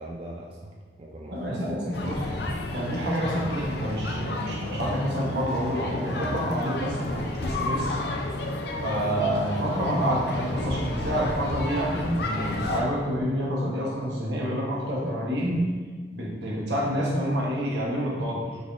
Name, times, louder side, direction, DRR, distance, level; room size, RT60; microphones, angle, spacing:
voice 1, 0.0-2.2, right 1 dB, 30° right, -2 dB, 0.3 m, -41 dB
voice 2, 1.3-2.2 2.7-8.0 8.8-15.7 16.1-18.6, equal, 75° right, -4 dB, 1.1 m, -28 dB
sound 1, 1.9-12.8, left 2 dB, 65° left, 0.5 m, -31 dB
4.8 x 3.8 x 2.5 m, 1.5 s
head